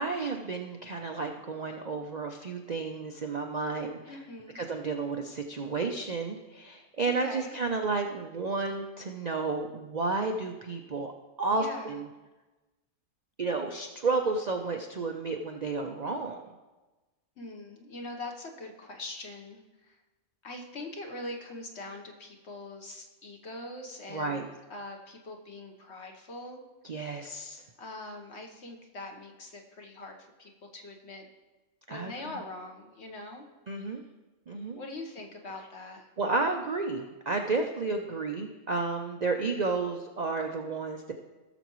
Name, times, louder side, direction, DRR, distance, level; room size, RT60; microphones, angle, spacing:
voice 1, 0.0-4.2 4.5-11.1 11.4-12.1 13.4-16.5 24.1-24.5 26.8-27.6 31.9-32.1 33.7-34.0 34.5-34.8 36.2-41.1, right 3 dB, 45° right, 3 dB, 0.5 m, -32 dB
voice 2, 4.1-4.7 7.0-7.6 11.5-12.0 17.4-20.0 20.4-26.6 27.8-31.3 31.9-33.5 34.7-36.1, left 2 dB, 50° left, 2 dB, 1.3 m, -43 dB
17.5 x 6.9 x 3.1 m, 1.2 s
omnidirectional pair, 1.5 m